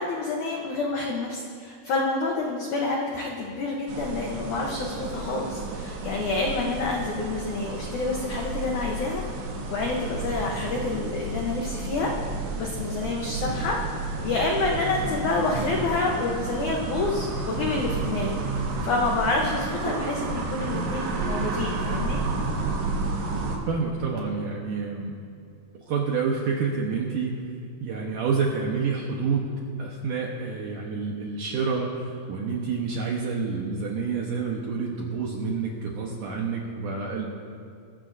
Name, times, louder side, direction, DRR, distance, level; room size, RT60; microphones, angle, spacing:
voice 1, 0.0-12.1 12.6-13.8 14.2-22.2, left 3 dB, 80° left, -1 dB, 1.7 m, -28 dB
sound 1, 3.9-23.6, right 3 dB, 90° right, 3.9 m, -31 dB
voice 2, 23.7-25.1 25.9-27.4 27.8-29.5 29.8-37.3, right 5 dB, 70° right, -2 dB, 2.0 m, -28 dB
23.0 x 14.5 x 2.7 m, 2.4 s
omnidirectional pair, 5.1 m